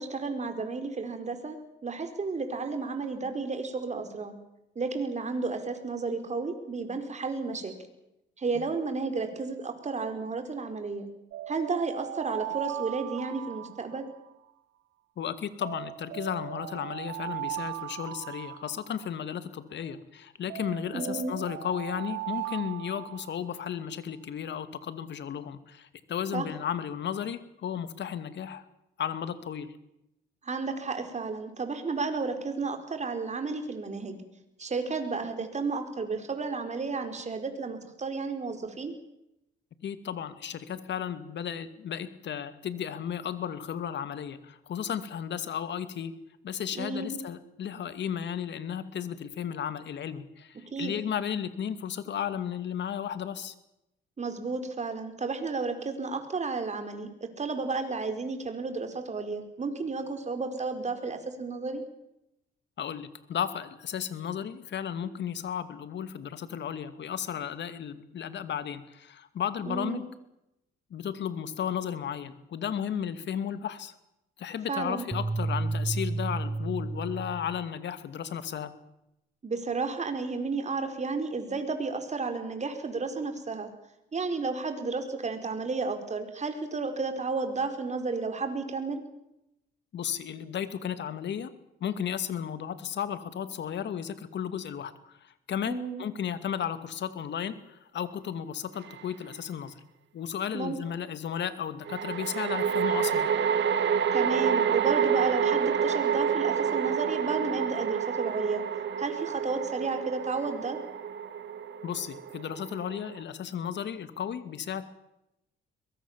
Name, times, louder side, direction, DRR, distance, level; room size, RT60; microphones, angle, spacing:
voice 1, 0.0-4.3 4.7-7.7 8.4-11.1 11.5-14.1 20.9-21.3 26.3-26.4 30.4-34.2 34.6-38.9 46.7-47.2 50.5-51.0 54.2-61.8 69.6-70.0 74.7-75.1 79.4-83.7 84.1-89.0 95.7-96.0 100.5-100.8 104.1-108.6 109.0-110.8, right 4 dB, 35° right, 7 dB, 4.8 m, -32 dB
sound 1, 11.3-14.5 15.6-19.4 20.5-23.7, right 15 dB, 90° right, 1.3 m, -38 dB
voice 2, 15.2-28.6 29.0-29.8 39.8-46.1 46.4-53.5 62.8-70.0 70.9-73.9 74.4-78.7 89.9-91.5 91.8-99.8 100.1-103.3 111.8-114.8, left 8 dB, 65° left, 12 dB, 2.4 m, -34 dB
sound 2, 75.1-77.6, right 3 dB, 15° right, 1.1 m, -31 dB
sound 3, 98.9-99.0 101.9-113.2, right 8 dB, 65° right, 2.2 m, -28 dB
23.0 x 21.0 x 7.4 m, 0.85 s
cardioid pair, 90°, 20 cm